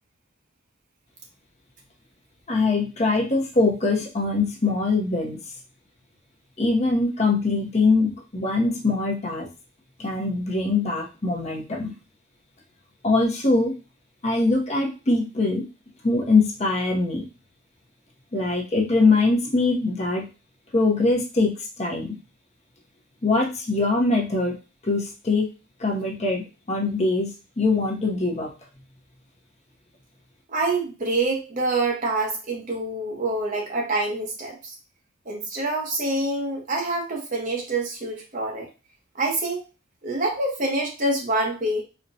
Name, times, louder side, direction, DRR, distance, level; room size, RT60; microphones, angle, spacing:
voice 1, 2.5-5.4 6.6-9.5 10.0-11.9 13.0-13.7 14.2-15.6 16.0-17.2 18.3-20.3 20.7-22.1 23.2-24.6 24.8-25.5 25.8-28.5, left 3 dB, 35° left, 0 dB, 0.7 m, -22 dB
voice 2, 30.5-34.6 35.3-38.7 39.1-39.6 40.0-41.8, right 2 dB, 45° right, 0 dB, 0.9 m, -26 dB
4.2 x 2.2 x 2.6 m, 0.30 s
head